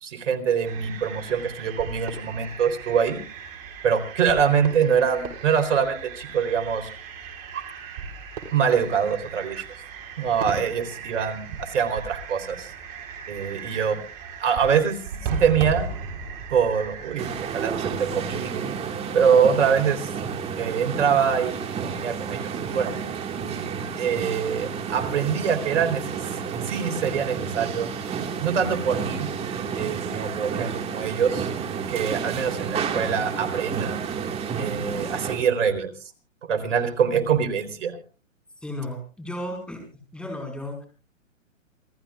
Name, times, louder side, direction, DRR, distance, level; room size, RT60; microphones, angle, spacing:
voice 1, 0.0-3.2 3.8-6.9 7.5-7.6 8.5-9.6 10.2-12.7 13.3-14.0 14.4-15.9 16.5-18.6 19.1-20.1 20.6-22.9 24.0-26.0 26.6-27.9 28.4-29.3 29.8-31.5 31.9-34.0 34.6-35.9 36.4-38.0, right 7 dB, 65° right, 8 dB, 4.1 m, -24 dB
sound 1, 0.6-18.3, right 5 dB, 45° right, 4.1 m, -37 dB
sound 2, 17.2-35.4, right 6 dB, 15° right, 2.0 m, -31 dB
voice 2, 38.6-39.9 40.1-40.9, left 1 dB, ahead, 3 dB, 5.1 m, -34 dB
27.5 x 15.0 x 2.5 m, 0.35 s
hypercardioid pair, 140°, 40 cm